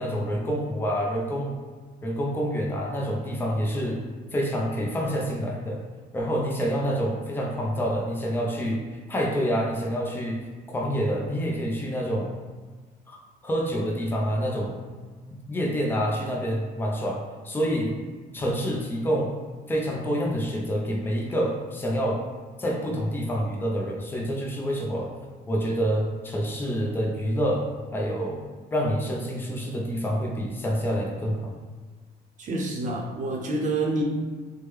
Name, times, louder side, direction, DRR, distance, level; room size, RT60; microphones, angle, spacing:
voice 1, 0.0-1.6 2.0-4.0 4.3-5.8 6.1-10.5 10.7-12.3 13.1-13.2 13.4-14.7 15.3-18.0 18.3-19.3 19.7-22.2 22.6-25.1 25.5-27.7 27.9-28.4 28.7-31.5, equal, 10° left, -2 dB, 0.5 m, -27 dB
voice 2, 32.4-34.0, right 2 dB, 50° right, 0 dB, 0.7 m, -27 dB
3.1 x 2.1 x 3.4 m, 1.4 s
cardioid pair, 110°, 17 cm